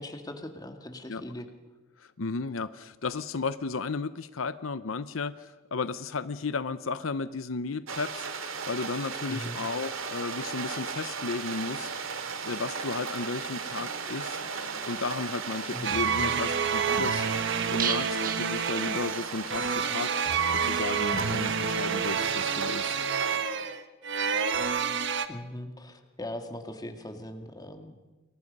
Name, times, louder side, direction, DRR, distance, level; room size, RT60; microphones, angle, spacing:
voice 1, 0.0-1.5 9.3-9.6 15.7-16.4 25.3-28.0, left 1 dB, 20° left, 6 dB, 2.1 m, -40 dB
voice 2, 2.0-14.4 14.6-17.4 17.7-20.1 20.5-23.0, left 4 dB, 80° left, 14 dB, 0.7 m, -34 dB
sound 1, 7.9-23.4, right 5 dB, 85° right, 2.4 m, -36 dB
sound 2, 15.8-25.3, right 6 dB, 65° right, 1.2 m, -28 dB
sound 3, 17.8-19.6 19.9-20.0 20.3-20.4, right 9 dB, 45° right, 1.4 m, -35 dB
29.0 x 22.5 x 5.4 m, 1.2 s
head